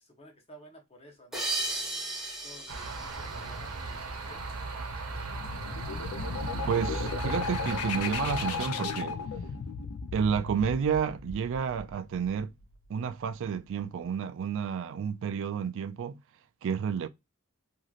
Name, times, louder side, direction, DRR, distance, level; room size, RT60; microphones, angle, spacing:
voice 1, 0.0-1.7 2.4-4.4, equal, 25° left, 0.9 m, -54 dB
sound 1, 1.3-4.4, right 2 dB, ahead, 0.7 m, -36 dB
sound 2, 2.7-8.7, right 3 dB, 75° right, 0.8 m, -36 dB
sound 3, 5.1-12.6, left 5 dB, 80° left, 0.4 m, -36 dB
voice 2, 6.6-9.2 10.1-12.5 12.9-16.2 16.6-17.1, right 7 dB, 60° right, 0.3 m, -30 dB
3.0 x 2.6 x 2.4 m
head